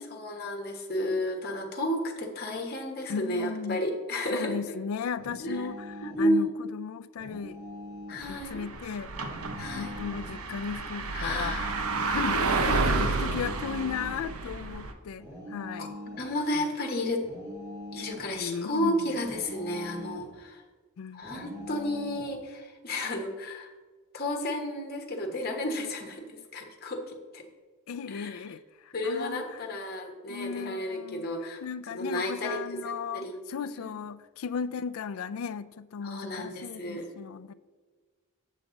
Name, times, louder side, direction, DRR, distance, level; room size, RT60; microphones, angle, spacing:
voice 1, 0.0-4.8 5.4-5.6 6.0-6.5 8.1-8.6 9.6-10.0 11.1-11.9 15.8-15.9 16.2-17.2 17.9-20.6 21.1-23.7 24.1-26.3 26.5-27.4 28.1-28.4 28.9-31.6 32.0-32.6 32.8-33.4 33.8-34.0 36.0-37.1, left 1 dB, 45° left, 3 dB, 1.2 m, -32 dB
voice 2, 3.1-3.8 4.3-7.6 8.3-9.1 9.7-11.6 12.0-16.0 16.5-16.7 18.4-19.1 21.0-21.7 27.9-29.6 30.3-31.3 31.6-37.5, left 6 dB, 75° left, 14 dB, 0.4 m, -36 dB
sound 1, 5.2-6.3 7.2-8.3 9.2-10.3 11.2-12.3 13.2-14.3 15.2-16.3 17.2-18.3 19.2-20.3 21.2-22.3, left 1 dB, 15° right, 2.4 m, -42 dB
sound 2, 8.2-14.9, right 3 dB, 90° right, 0.8 m, -30 dB
7.9 x 7.4 x 3.9 m, 1.4 s
head